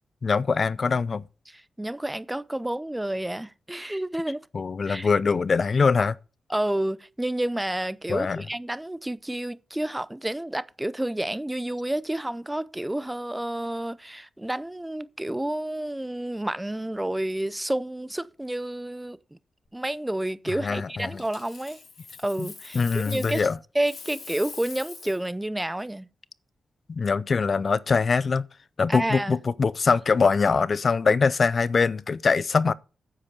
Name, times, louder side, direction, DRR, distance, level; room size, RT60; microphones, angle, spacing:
voice 1, 0.2-1.2 4.5-6.2 8.1-8.4 20.6-21.2 22.4-22.5 22.7-23.5 26.9-28.4 28.8-32.7, left 5 dB, 50° left, 0.4 m, -23 dB
voice 2, 1.5-4.4 4.9-5.1 6.5-19.4 19.7-21.8 22.2-23.5 23.7-26.1 28.9-29.3, right 1 dB, 10° right, 0.5 m, -30 dB
Coin (dropping), 21.2-23.5 23.8-25.3 28.1-28.3, left 5 dB, 65° left, 3.7 m, -43 dB
9.8 x 7.6 x 5.3 m
cardioid pair, 90°, 0 cm